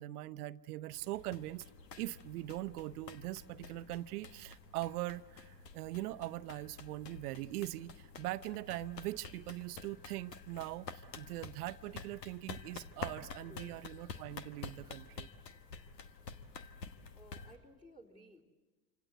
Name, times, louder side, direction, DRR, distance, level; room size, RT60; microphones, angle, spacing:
voice 1, 0.0-1.6 2.0-15.3, right 16 dB, 65° right, 14 dB, 0.9 m, -41 dB
sound 1, 0.9-17.6, left 5 dB, 85° left, 1.4 m, -49 dB
voice 2, 17.2-18.5, right 1 dB, 10° left, 4 dB, 3.4 m, -57 dB
27.5 x 26.0 x 8.0 m, 1.2 s
hypercardioid pair, 80°, 48 cm